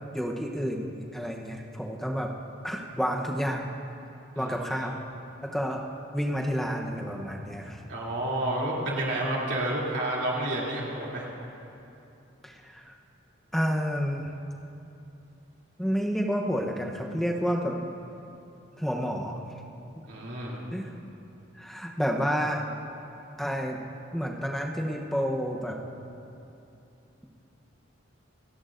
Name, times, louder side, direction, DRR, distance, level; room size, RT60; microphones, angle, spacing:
voice 1, 0.1-2.3 2.6-3.6 4.4-5.0 5.4-7.8 12.4-12.9 13.5-14.3 15.8-17.8 18.8-19.4 20.7-21.0 21.6-22.6 23.4-23.8 24.1-25.8, equal, ahead, 0 dB, 0.8 m, -30 dB
voice 2, 4.3-4.7 7.9-11.3 20.1-20.6, right 1 dB, 60° right, -5 dB, 2.9 m, -30 dB
28.5 x 11.0 x 2.6 m, 2.8 s
head